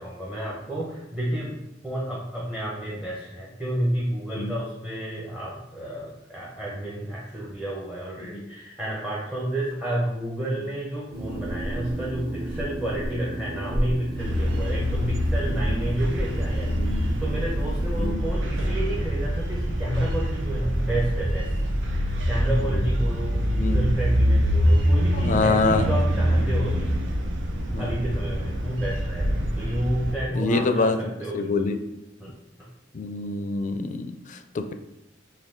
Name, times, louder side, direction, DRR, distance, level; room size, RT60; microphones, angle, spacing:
voice 1, 0.0-1.6 1.8-21.5 21.9-26.9 27.8-31.7 32.2-32.7, right 1 dB, 5° right, -4 dB, 0.7 m, -30 dB
sound 1, 11.1-18.1, right 1 dB, 50° right, 1.4 m, -33 dB
sound 2, 14.2-30.2, equal, 85° right, 0.7 m, -25 dB
voice 2, 15.5-15.8 16.7-17.1 18.0-18.2 23.5-23.8 25.1-25.9 27.7-27.9 30.3-31.0 31.3-31.8 32.9-34.7, left 3 dB, 45° left, 8 dB, 0.4 m, -26 dB
5.8 x 2.3 x 3.7 m, 0.88 s
head